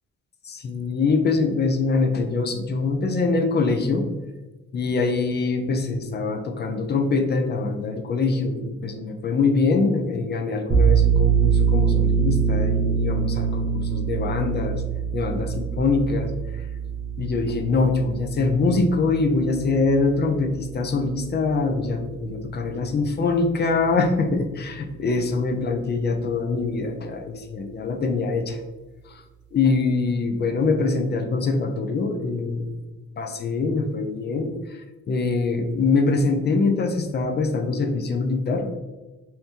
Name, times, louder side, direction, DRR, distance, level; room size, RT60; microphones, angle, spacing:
voice 1, 0.5-4.1 4.7-14.8 15.1-16.3 17.2-28.6 29.1-29.2 29.5-32.7 33.2-34.8 35.1-38.7, left 3 dB, 35° left, 5 dB, 0.5 m, -24 dB
sound 1, 10.7-22.0, right 7 dB, 35° right, 0.8 m, -24 dB
2.8 x 2.6 x 3.5 m, 1.2 s
cardioid pair, 90°, 30 cm